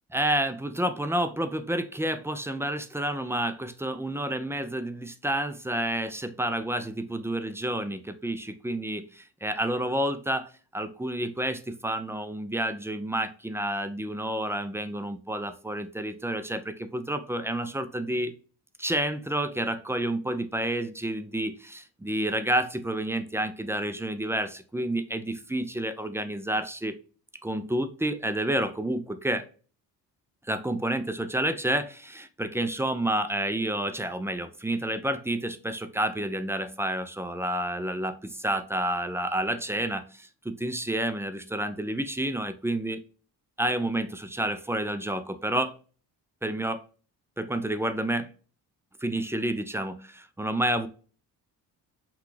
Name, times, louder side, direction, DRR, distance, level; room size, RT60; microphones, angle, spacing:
voice 1, 0.1-18.3 18.8-27.0 27.4-29.4 30.5-43.0 43.6-45.8 46.4-46.8 47.4-48.3 49.0-50.9, right 1 dB, 5° right, 10 dB, 0.4 m, -29 dB
5.9 x 2.3 x 3.2 m, 0.38 s
cardioid pair, 110°, 39 cm